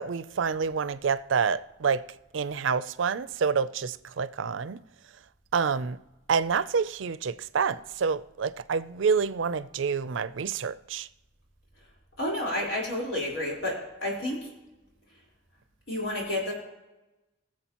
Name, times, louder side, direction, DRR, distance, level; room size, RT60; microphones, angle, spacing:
voice 1, 0.0-2.0 2.3-4.8 5.5-6.0 6.3-11.1, right 6 dB, 80° right, 0.5 m, -28 dB
voice 2, 12.2-14.5 15.9-16.5, left 1 dB, 80° left, 4.1 m, -30 dB
22.0 x 7.5 x 3.0 m
head